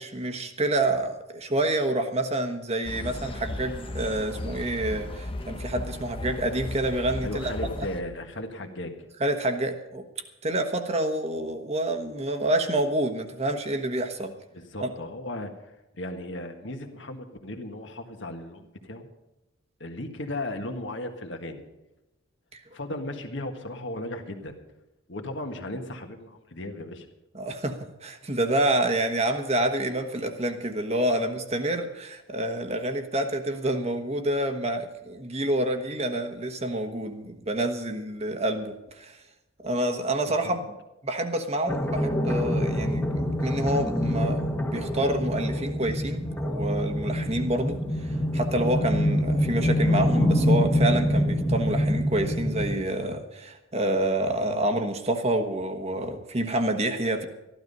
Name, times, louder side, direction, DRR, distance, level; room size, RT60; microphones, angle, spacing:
voice 1, 0.0-7.5 7.8-7.9 9.2-10.0 10.4-14.3 14.8-14.9 22.5-22.6 27.3-39.2 39.6-40.8 41.0-57.3, right 1 dB, 30° right, 6 dB, 1.3 m, -28 dB
sound 1, 2.8-8.0, left 1 dB, 25° left, 0.9 m, -35 dB
voice 2, 7.2-9.1 14.5-19.1 19.8-21.6 22.7-24.5 25.1-27.0 40.3-40.6, left 1 dB, 60° left, 5 dB, 1.7 m, -36 dB
sound 2, 41.7-52.8, equal, 10° left, 1.3 m, -25 dB
14.0 x 12.0 x 5.5 m, 0.99 s
head